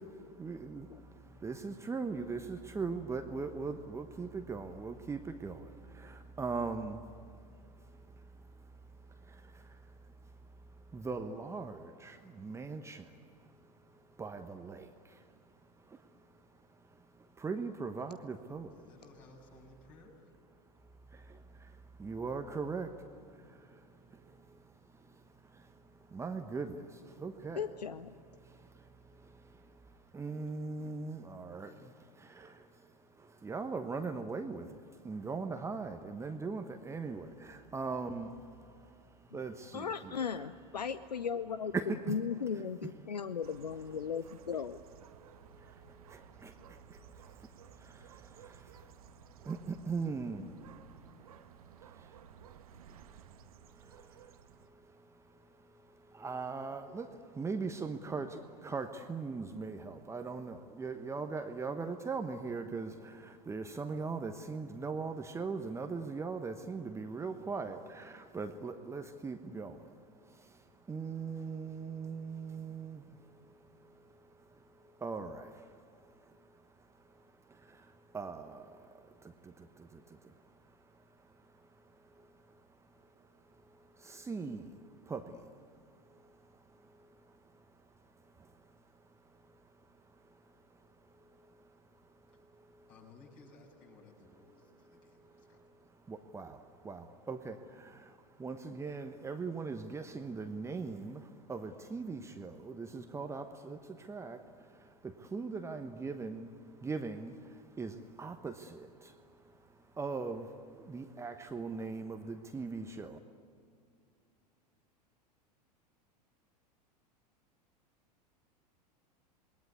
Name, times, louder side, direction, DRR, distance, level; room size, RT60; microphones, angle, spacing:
voice 1, 0.4-0.9 1.4-5.6 6.4-7.0 10.9-12.1 12.4-13.0 14.2-14.8 17.4-18.7 22.0-22.9 26.1-26.8 27.2-27.6 30.1-31.7 33.4-34.7 35.0-38.3 39.3-40.1 41.7-42.1 46.4-46.5 49.5-50.5 56.2-57.1 57.4-58.4 58.6-62.9 63.5-69.7 70.9-73.0 75.0-75.4 78.1-78.6 84.1-84.6 85.1-85.2 96.1-96.6 96.8-97.5 98.4-101.2 101.5-103.8 104.1-104.4 105.3-106.5 106.8-107.3 107.8-108.8 110.0-110.4 110.9-113.2, right 4 dB, 15° right, 7 dB, 1.2 m, -39 dB
voice 2, 18.7-20.2 30.3-30.7 92.9-95.6, left 3 dB, 40° left, 1 dB, 7.2 m, -58 dB
voice 3, 27.6-28.1 39.7-44.8, left 6 dB, 75° left, 13 dB, 0.7 m, -37 dB
sound 1, 43.4-54.7, right 8 dB, 60° right, 1.2 m, -56 dB
27.5 x 21.0 x 9.5 m, 2.4 s
figure-of-eight pair, 85°, 21 cm